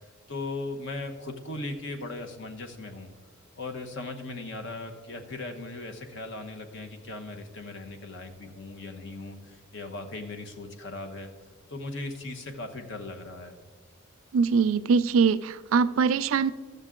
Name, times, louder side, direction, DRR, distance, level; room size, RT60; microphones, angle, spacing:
voice 1, 0.3-3.1 3.6-11.3 11.7-13.5, left 2 dB, 60° left, 5 dB, 1.0 m, -38 dB
voice 2, 14.3-16.5, right 5 dB, 70° right, 15 dB, 0.4 m, -22 dB
13.0 x 6.7 x 3.7 m, 1.5 s
head